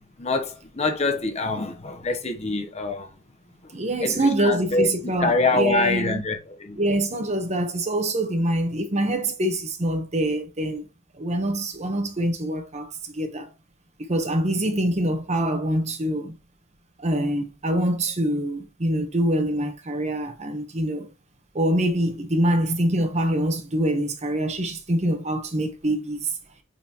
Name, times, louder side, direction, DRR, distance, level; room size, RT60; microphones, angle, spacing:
voice 1, 0.2-3.1 4.0-4.9 5.2-6.8, left 3 dB, 30° left, 0.9 m, -25 dB
voice 2, 3.7-6.2 6.7-10.8 11.2-13.5 14.1-16.4 17.0-21.1 21.5-26.3, right 1 dB, 35° right, 1.0 m, -25 dB
8.6 x 4.1 x 2.9 m
head